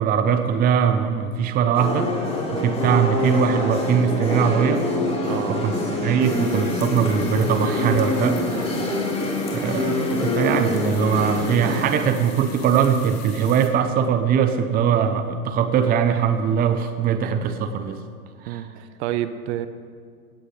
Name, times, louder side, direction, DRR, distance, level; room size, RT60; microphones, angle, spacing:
voice 1, 0.0-2.1 2.5-4.8 5.6-9.0 9.5-18.0 18.4-18.7, right 7 dB, 20° right, 8 dB, 0.7 m, -21 dB
sound 1, 1.7-12.1, left 1 dB, 15° left, 4.2 m, -25 dB
voice 2, 5.2-5.6 18.5-19.7, right 12 dB, 50° right, 12 dB, 1.0 m, -29 dB
sound 2, 6.2-13.7, left 8 dB, 40° left, 2.6 m, -43 dB
18.0 x 17.0 x 3.4 m, 2.1 s
hypercardioid pair, 110°, 44 cm